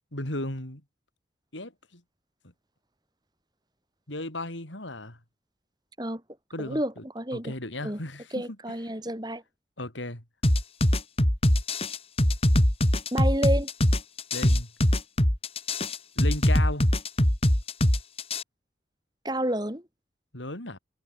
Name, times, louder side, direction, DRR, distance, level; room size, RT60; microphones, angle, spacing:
voice 1, 0.1-0.8 1.5-2.0 4.1-5.2 6.5-7.0 7.3-8.4 9.8-10.2 14.3-14.7 16.2-16.9 20.3-20.8, left 1 dB, 90° left, 5.7 m, -35 dB
voice 2, 6.6-7.5 7.8-8.0 8.3-9.4 13.1-13.7 19.2-19.8, right 1 dB, 20° right, 4.4 m, -29 dB
sound 1, 10.4-18.4, left 1 dB, 30° left, 3.0 m, -22 dB
head